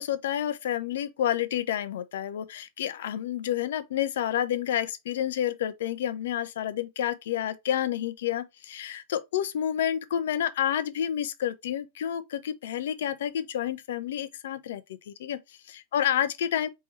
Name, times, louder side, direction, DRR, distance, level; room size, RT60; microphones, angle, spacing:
voice 1, 0.0-15.4 15.7-16.7, left 10 dB, 60° left, 0.5 m, -29 dB
4.3 x 3.5 x 2.8 m
figure-of-eight pair, 90°, 0 cm